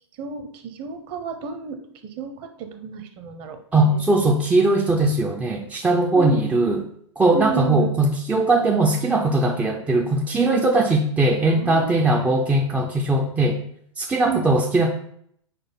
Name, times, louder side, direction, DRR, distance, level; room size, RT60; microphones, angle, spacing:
voice 1, 0.2-4.0 6.1-6.4 7.2-7.9 11.5-12.0 14.2-14.5, right 5 dB, 35° right, 7 dB, 0.8 m, -31 dB
voice 2, 3.7-6.8 7.2-13.6 14.0-14.9, right 2 dB, 10° right, 2 dB, 0.4 m, -20 dB
4.8 x 4.2 x 5.6 m, 0.66 s
figure-of-eight pair, 105°, 15 cm